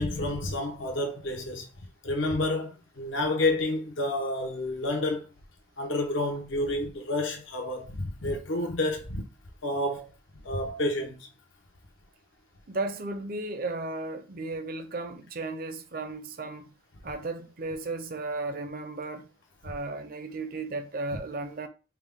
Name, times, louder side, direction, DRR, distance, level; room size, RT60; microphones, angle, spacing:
voice 1, 0.0-1.7 2.0-5.3 5.8-9.2 9.6-10.1 10.4-11.3, left 2 dB, 75° left, 0.9 m, -29 dB
voice 2, 12.7-16.7 17.0-19.3 19.6-21.7, right 2 dB, 45° right, 0.6 m, -35 dB
4.5 x 2.2 x 3.6 m
head